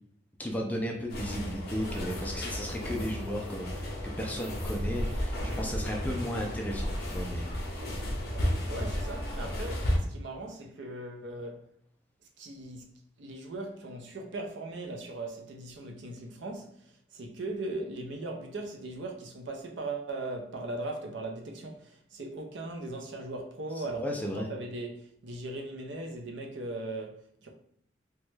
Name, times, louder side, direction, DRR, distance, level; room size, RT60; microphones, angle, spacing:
voice 1, 0.4-7.9 9.4-9.5 23.8-24.5, equal, 10° left, 0.3 m, -35 dB
sound 1, 1.1-10.0, equal, 55° left, 0.7 m, -33 dB
voice 2, 8.3-11.7 12.4-12.9 13.2-24.2 24.5-27.5, right 2 dB, 65° right, 0.5 m, -39 dB
3.0 x 2.2 x 3.2 m
head